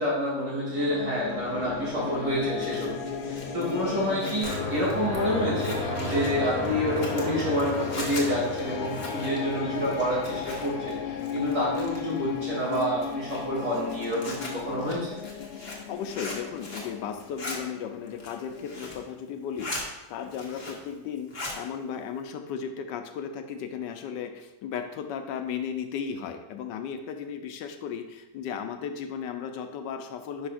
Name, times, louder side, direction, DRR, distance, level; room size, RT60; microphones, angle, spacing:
voice 1, 0.0-2.9 3.2-10.7 11.0-15.1, equal, 75° right, -6 dB, 3.4 m, -28 dB
sound 1, 0.7-18.9, left 7 dB, 65° left, 0.6 m, -35 dB
Zipper (clothing), 2.4-10.9 11.2-12.2 12.6-16.9 17.2-17.6 18.0-19.0 19.4-19.8 20.2-20.9 21.2-21.6, left 2 dB, 30° left, 1.2 m, -40 dB
sound 2, 4.4-11.1, left 1 dB, 55° right, 2.8 m, -35 dB
voice 2, 15.9-30.5, left 7 dB, 90° left, 7 dB, 1.3 m, -35 dB
10.0 x 5.4 x 2.5 m, 0.98 s
omnidirectional pair, 1.9 m